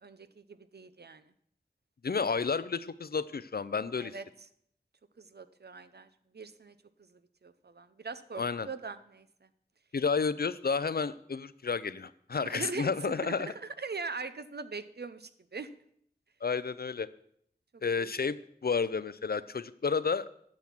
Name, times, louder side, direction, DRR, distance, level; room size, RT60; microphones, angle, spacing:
voice 1, 0.0-1.2 4.0-4.2 5.2-6.1 6.3-6.7 7.1-9.5 12.4-15.7 18.0-18.1, right 4 dB, 80° right, 12 dB, 0.6 m, -41 dB
voice 2, 2.0-4.1 8.4-8.7 9.9-13.5 16.4-17.1 17.8-20.3, left 5 dB, 70° left, 16 dB, 0.5 m, -31 dB
10.5 x 6.4 x 5.9 m, 0.68 s
wide cardioid pair, 40°, 17 cm